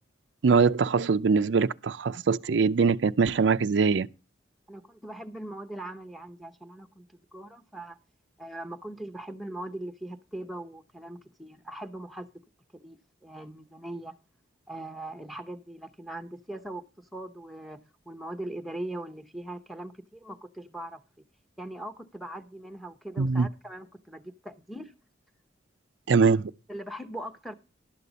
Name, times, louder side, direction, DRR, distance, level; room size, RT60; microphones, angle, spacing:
voice 1, 0.4-4.1 23.2-23.5 26.1-26.5, right 5 dB, 75° right, 0.5 m, -22 dB
voice 2, 4.7-7.1 7.3-8.0 8.4-12.3 12.7-14.2 14.7-21.2 21.6-24.9 26.7-27.5, right 1 dB, ahead, 0.8 m, -40 dB
12.0 x 8.4 x 4.0 m
head